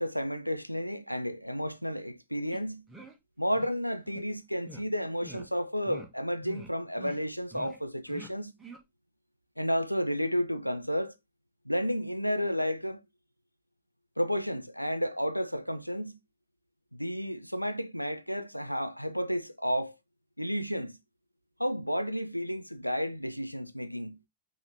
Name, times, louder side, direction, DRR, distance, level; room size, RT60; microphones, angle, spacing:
voice 1, 0.0-2.8 3.4-8.5 9.6-11.1 11.7-13.0 14.2-16.2 16.9-19.9 20.4-21.0 21.6-24.2, equal, 90° left, 0.4 m, -32 dB
sound 1, 2.5-2.6 2.9-3.1 3.5-3.7 4.1-4.2 4.7-4.8 5.2-5.5 5.8-6.1 6.4-6.7 7.0-7.2 7.5-7.8 8.1-8.3 8.6-8.8, right 1 dB, 10° right, 1.3 m, -46 dB
5.5 x 2.9 x 3.2 m
figure-of-eight pair, 90°, 0 cm